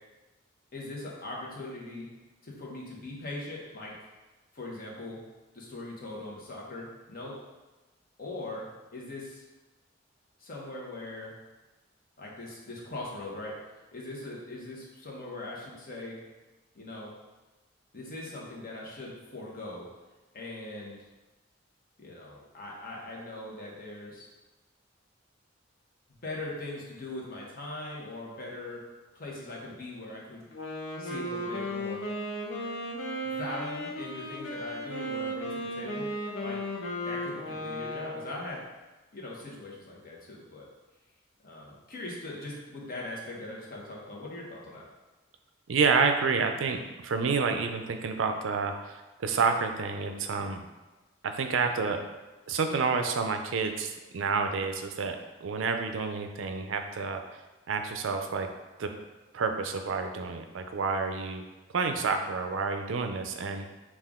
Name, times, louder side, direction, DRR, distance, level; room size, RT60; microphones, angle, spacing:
voice 1, 0.7-2.1 2.4-4.0 4.5-5.2 5.5-7.4 8.2-9.4 10.4-11.3 12.2-13.6 13.9-16.2 16.7-17.1 17.9-19.9 20.3-20.9 22.0-24.3 26.2-28.8 29.1-30.4 31.0-32.1 33.2-36.6 37.0-38.6 39.1-40.7 41.4-44.8, left 2 dB, 50° left, -3 dB, 1.0 m, -40 dB
Wind instrument woodwind instrument, 30.4-38.4, equal, 80° left, 0.8 m, -35 dB
voice 2, 45.7-50.6 51.2-52.0 52.5-57.2 57.7-58.5 58.8-58.9 59.3-61.4 61.7-63.7, right 5 dB, 85° right, 6 dB, 0.5 m, -29 dB
5.6 x 2.5 x 3.6 m, 1.2 s
head